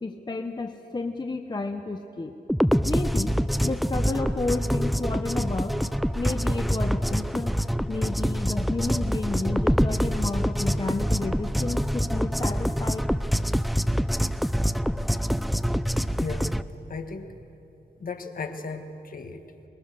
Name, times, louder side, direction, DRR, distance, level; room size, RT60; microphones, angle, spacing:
voice 1, 0.0-2.3 2.8-3.3 3.6-5.8 6.1-7.6 7.9-13.1, left 3 dB, 25° left, 6 dB, 0.8 m, -31 dB
sound 1, 2.5-16.6, equal, ahead, 0.4 m, -25 dB
voice 2, 16.2-16.6 16.9-17.3 18.0-19.4, left 4 dB, 50° left, 5 dB, 1.6 m, -35 dB
23.5 x 20.5 x 6.8 m, 2.8 s
wide cardioid pair, 115°, 18 cm